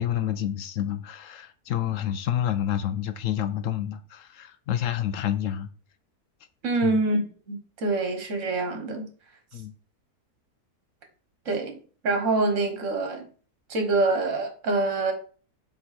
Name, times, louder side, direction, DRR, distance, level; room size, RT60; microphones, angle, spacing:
voice 1, 0.0-5.7 6.8-7.0 9.5-9.7, left 10 dB, 70° left, 0.9 m, -29 dB
voice 2, 6.6-7.2 7.5-9.1 11.5-11.8 12.0-13.2 13.7-15.1, right 2 dB, 55° right, 1.7 m, -25 dB
7.7 x 3.7 x 4.3 m
omnidirectional pair, 1.6 m